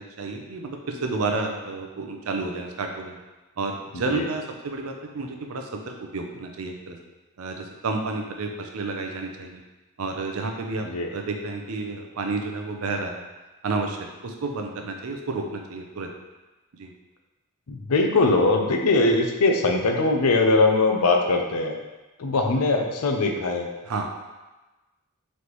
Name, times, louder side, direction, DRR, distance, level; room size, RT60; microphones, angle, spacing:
voice 1, 0.0-3.2 3.6-7.0 7.4-9.6 10.0-13.2 13.6-16.1 16.8-16.9 23.8-24.0, right 3 dB, 65° right, 3 dB, 0.5 m, -31 dB
voice 2, 17.7-21.8 22.2-23.7, left 2 dB, 75° left, 3 dB, 0.5 m, -21 dB
4.1 x 3.3 x 3.0 m, 1.1 s
head